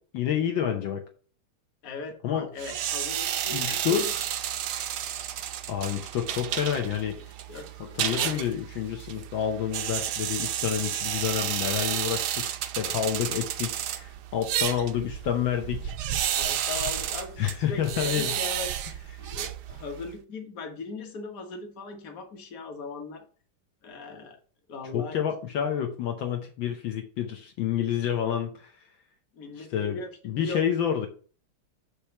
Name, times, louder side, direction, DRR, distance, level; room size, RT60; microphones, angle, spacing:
voice 1, 0.1-1.0 2.2-2.5 3.5-4.0 5.7-7.2 7.8-15.9 17.4-18.3 19.2-19.3 24.9-28.7 29.6-30.0 30.2-31.1, left 9 dB, 70° left, 3 dB, 1.6 m, -29 dB
voice 2, 1.8-4.1 7.5-8.5 16.4-23.2 23.8-24.4 24.7-25.2 29.3-30.6, left 4 dB, 45° left, 4 dB, 1.6 m, -39 dB
sound 1, 2.6-20.1, right 11 dB, 75° right, 1.0 m, -31 dB
6.7 x 3.2 x 5.8 m, 0.40 s
omnidirectional pair, 2.3 m